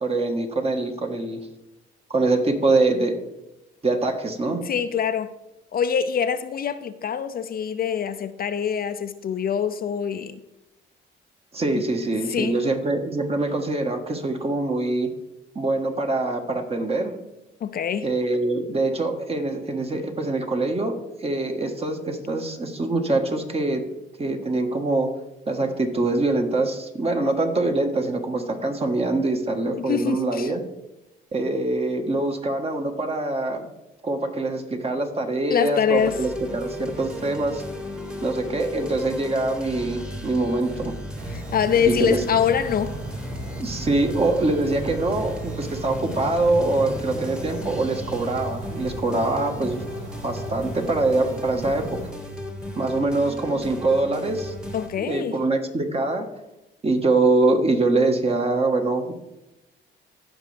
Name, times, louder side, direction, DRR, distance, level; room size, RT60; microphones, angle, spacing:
voice 1, 0.0-1.5 2.1-3.2 3.8-4.6 11.5-15.1 15.5-17.1 18.0-23.8 24.2-25.2 25.5-30.6 31.3-33.7 34.0-37.6 38.2-40.9 41.9-42.2 43.6-49.8 50.2-52.0 52.8-54.5 55.0-56.3 56.8-59.1, right 2 dB, 30° right, 1.3 m, -24 dB
voice 2, 4.5-5.3 5.7-10.4 11.7-11.8 12.3-12.6 17.6-18.1 29.8-30.5 35.5-36.2 41.3-42.9 54.7-55.3, left 8 dB, 50° left, 0.5 m, -24 dB
sound 1, 35.9-54.9, left 1 dB, 5° right, 1.3 m, -35 dB
sound 2, 41.2-52.1, right 3 dB, 80° right, 2.0 m, -37 dB
15.5 x 5.3 x 3.3 m
cardioid pair, 90°, 20 cm